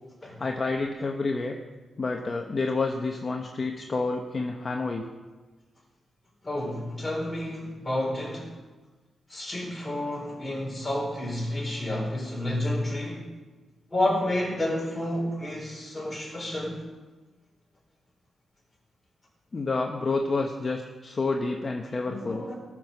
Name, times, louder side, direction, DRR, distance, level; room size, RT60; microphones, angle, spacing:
voice 1, 0.4-1.6 2.0-5.1 19.5-22.4, left 3 dB, 30° left, 2 dB, 0.9 m, -29 dB
voice 2, 6.4-8.5 9.3-13.3 13.9-16.8 22.1-22.6, left 1 dB, 10° left, -4 dB, 4.6 m, -30 dB
18.5 x 6.1 x 6.9 m, 1.3 s
wide cardioid pair, 150°, 0 cm